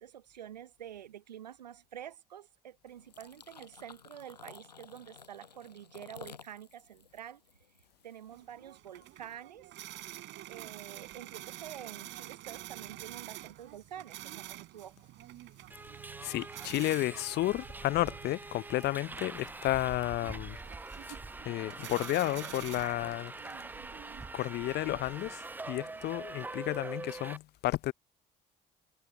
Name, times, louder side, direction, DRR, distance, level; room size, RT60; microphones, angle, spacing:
voice 1, 0.0-7.4 8.0-9.7 10.5-14.9 21.1-21.7, right 10 dB, 85° right, 0.7 m, -48 dB
sound 1, 3.0-8.2, left 6 dB, 90° left, 5.2 m, -53 dB
sound 2, 8.3-26.2, right 16 dB, 65° right, 5.1 m, -49 dB
Subway metro underground, 15.7-27.4, right 3 dB, 10° right, 0.4 m, -44 dB
voice 2, 16.2-20.6 21.4-23.3 24.3-27.9, left 16 dB, 55° left, 0.5 m, -32 dB
figure-of-eight pair, 50°, 21 cm